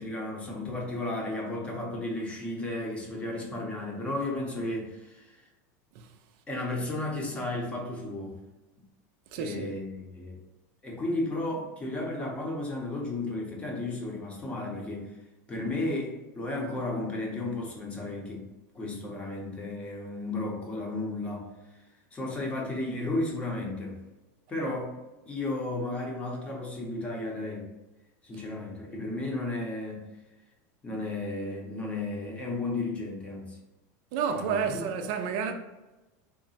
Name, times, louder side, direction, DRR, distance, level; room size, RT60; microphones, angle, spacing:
voice 1, 0.0-5.4 6.5-8.4 9.4-10.4 10.8-15.1 15.5-18.5 18.7-21.5 22.1-24.0 24.5-24.9 25.3-27.7 28.2-30.1 30.8-33.6 34.3-34.8, left 2 dB, 15° left, 0.7 m, -33 dB
voice 2, 9.3-9.7 34.1-35.5, right 6 dB, 50° right, 0.5 m, -30 dB
3.8 x 2.1 x 4.0 m
supercardioid pair, 165°, 8 cm